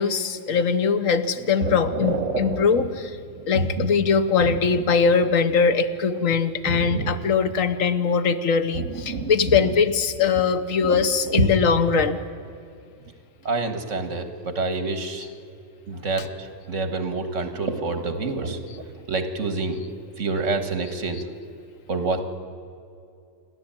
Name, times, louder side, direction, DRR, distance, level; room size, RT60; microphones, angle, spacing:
voice 1, 0.0-3.1 3.5-12.2 16.2-16.3, left 5 dB, 80° left, 11 dB, 1.4 m, -21 dB
voice 2, 1.6-2.9 3.4-3.9 4.4-4.8 6.7-7.1 8.8-9.3 10.8-11.0 11.3-11.5 13.4-15.3 15.9-19.8 20.2-21.3 21.9-22.2, right 3 dB, 70° right, 9 dB, 2.0 m, -27 dB
28.5 x 11.0 x 8.9 m, 2.5 s
omnidirectional pair, 1.3 m